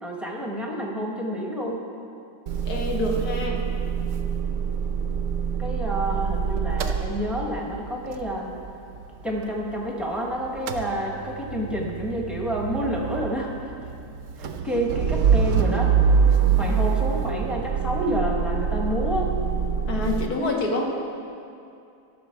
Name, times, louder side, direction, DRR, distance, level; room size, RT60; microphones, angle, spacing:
voice 1, 0.0-1.8 5.6-8.5 9.2-13.5 14.4-15.9 16.6-19.3, equal, ahead, -1 dB, 0.7 m, -29 dB
Motor vehicle (road) / Engine starting / Idling, 2.5-10.2 10.4-20.3, right 6 dB, 70° right, 0.7 m, -25 dB
voice 2, 2.6-3.7 16.6-16.8 19.9-20.8, left 2 dB, 65° left, 1 dB, 1.5 m, -27 dB
14.0 x 6.5 x 4.5 m, 2.5 s
omnidirectional pair, 1.9 m